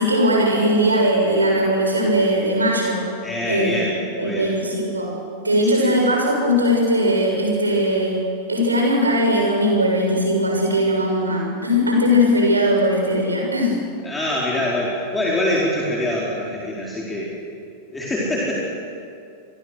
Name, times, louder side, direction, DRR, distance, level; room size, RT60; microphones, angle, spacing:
voice 1, 0.0-3.0 3.5-3.8 4.2-5.2 5.4-8.2 8.5-13.7, equal, 80° right, -1 dB, 7.1 m, -19 dB
voice 2, 3.2-4.5 5.7-5.9 14.0-17.3 17.9-18.5, left 1 dB, 10° left, -5 dB, 4.5 m, -24 dB
28.5 x 21.5 x 6.5 m, 2.5 s
figure-of-eight pair, 90°, 0 cm